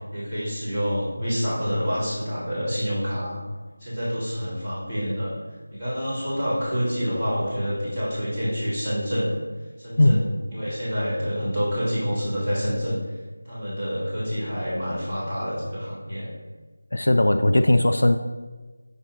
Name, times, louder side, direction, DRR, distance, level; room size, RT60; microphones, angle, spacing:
voice 1, 0.1-3.4 3.8-5.3 5.7-9.4 9.8-13.0 13.5-16.3, equal, 5° left, -16 dB, 1.8 m, -27 dB
voice 2, 16.9-18.2, left 1 dB, 70° left, 8 dB, 0.3 m, -18 dB
7.3 x 5.9 x 2.8 m, 1.3 s
figure-of-eight pair, 180°, 0 cm